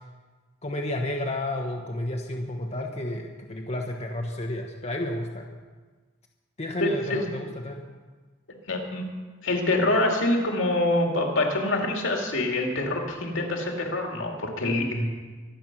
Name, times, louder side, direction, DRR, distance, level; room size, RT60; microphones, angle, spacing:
voice 1, 0.6-5.5 6.6-7.8, left 1 dB, 35° left, 1 dB, 1.1 m, -31 dB
voice 2, 6.8-7.3 8.7-9.1 9.4-15.1, left 2 dB, 70° left, 2 dB, 2.5 m, -25 dB
23.5 x 8.2 x 6.0 m, 1.4 s
head